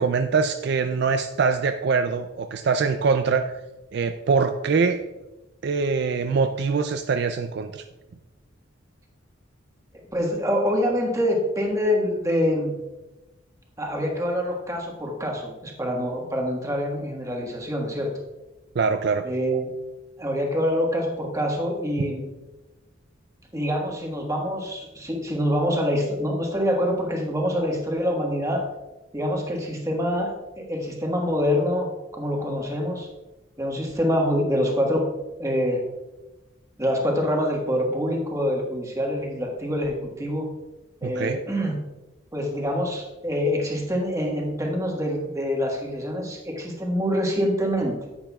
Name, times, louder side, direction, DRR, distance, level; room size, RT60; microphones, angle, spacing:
voice 1, 0.0-3.5 3.9-5.0 5.6-7.8 18.8-19.3 41.0-41.4, right 5 dB, 55° right, 8 dB, 0.3 m, -23 dB
voice 2, 10.1-12.8 13.8-18.1 19.2-19.6 20.2-22.3 23.5-28.6 29.1-33.1 33.6-35.1 35.4-35.8 36.8-40.5 41.0-41.9 42.3-48.0, equal, 15° right, 0 dB, 1.4 m, -25 dB
10.0 x 8.8 x 2.3 m, 1.1 s
head